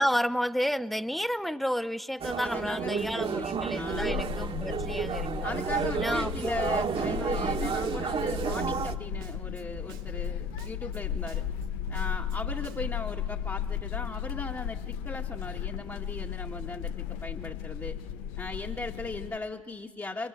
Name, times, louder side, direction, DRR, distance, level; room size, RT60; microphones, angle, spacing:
voice 1, 0.0-5.5 6.0-6.6 7.2-7.3, equal, ahead, 12 dB, 1.1 m, -31 dB
sound 1, 2.2-8.9, right 6 dB, 35° right, 1.9 m, -31 dB
voice 2, 2.4-4.2 5.4-11.4 11.9-18.0 18.4-20.3, left 3 dB, 15° left, -1 dB, 1.8 m, -38 dB
sound 2, 3.9-19.4, left 9 dB, 60° left, 1.2 m, -35 dB
Snare drum, 7.5-13.0, right 8 dB, 60° right, 1.4 m, -47 dB
27.0 x 24.0 x 8.9 m, 1.3 s
figure-of-eight pair, 60°, 17 cm